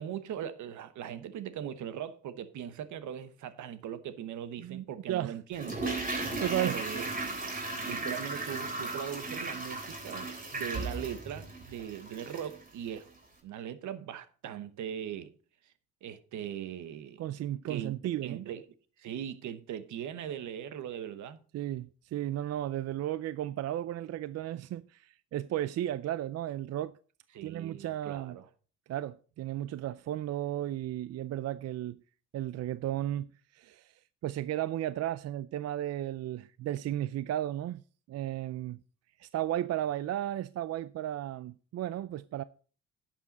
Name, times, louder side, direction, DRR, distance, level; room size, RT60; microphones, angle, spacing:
voice 1, 0.0-5.8 6.7-7.1 7.8-13.1 13.4-15.3 16.0-17.2 17.7-17.9 18.2-18.6 19.0-21.4 27.3-28.5, right 9 dB, 75° right, 1.0 m, -40 dB
voice 2, 4.6-5.4 6.1-6.8 7.7-7.9 17.2-18.5 21.5-26.9 27.4-28.4 28.9-32.0 32.3-33.3 33.5-37.8 38.1-38.8 39.2-42.4, right 12 dB, 55° right, 0.4 m, -34 dB
Toilet flush, 5.5-12.6 12.9-13.0, right 3 dB, 30° right, 3.4 m, -36 dB
11.0 x 7.4 x 4.0 m
cardioid pair, 90°, 30 cm